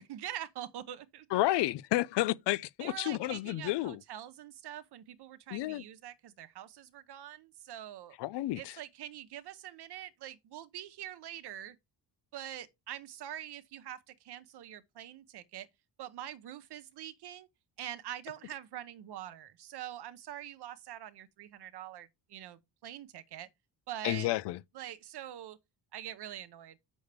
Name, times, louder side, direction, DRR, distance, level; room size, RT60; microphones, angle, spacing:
voice 1, 0.0-1.3 2.8-8.2 8.6-11.8 12.3-15.7 16.0-17.5 17.8-23.5 23.9-24.3 24.7-25.6 25.9-26.8, right 11 dB, 70° right, 1.0 m, -44 dB
voice 2, 1.3-4.0 5.5-5.8 8.2-8.7 24.0-24.6, left 16 dB, 90° left, 0.5 m, -31 dB
8.1 x 6.3 x 3.4 m
cardioid pair, 135°, 40 cm